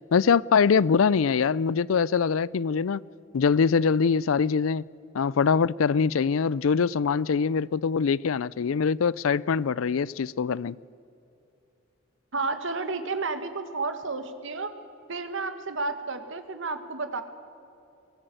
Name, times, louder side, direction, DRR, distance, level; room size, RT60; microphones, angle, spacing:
voice 1, 0.1-3.0 3.3-4.8 5.1-10.8, left 6 dB, 85° left, 0.4 m, -23 dB
voice 2, 12.3-14.7 15.1-17.2, right 3 dB, 65° right, 1.8 m, -31 dB
23.0 x 19.0 x 7.8 m
head